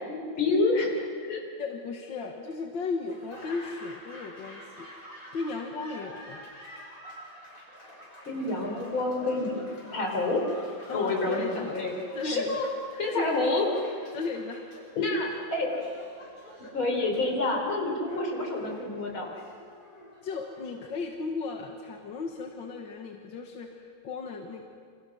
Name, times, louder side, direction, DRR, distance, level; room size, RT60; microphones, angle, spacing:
voice 1, 0.1-1.4 8.3-9.6 9.9-10.4 10.9-12.0 12.2-12.7 13.0-13.7 15.0-15.9 16.7-19.3, left 2 dB, 85° left, 1 dB, 5.0 m, -28 dB
voice 2, 1.6-4.9 5.3-6.5 10.9-11.7 12.1-12.6 12.9-13.3 14.1-14.7 20.2-24.6, left 4 dB, 70° left, 2 dB, 2.2 m, -35 dB
Laughter / Applause, 3.1-21.1, left 1 dB, 45° left, 8.0 m, -47 dB
29.5 x 27.0 x 6.2 m, 2.2 s
omnidirectional pair, 2.2 m